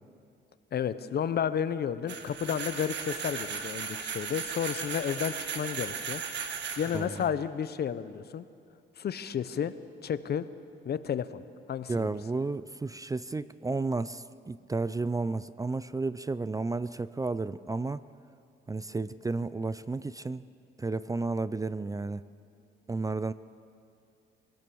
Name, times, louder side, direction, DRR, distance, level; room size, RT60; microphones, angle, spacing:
voice 1, 0.7-6.2 6.8-8.4 9.0-9.7 10.0-10.5 10.8-11.4 11.7-12.1, left 8 dB, 55° left, 13 dB, 0.9 m, -32 dB
sound 1, 2.1-7.3, right 6 dB, 65° right, 1.8 m, -36 dB
voice 2, 6.9-7.3 11.9-18.0 18.7-20.4 20.8-22.2 22.9-23.3, right 3 dB, 15° right, 16 dB, 0.5 m, -32 dB
23.5 x 17.0 x 7.0 m, 2.5 s
cardioid pair, 90°, 20 cm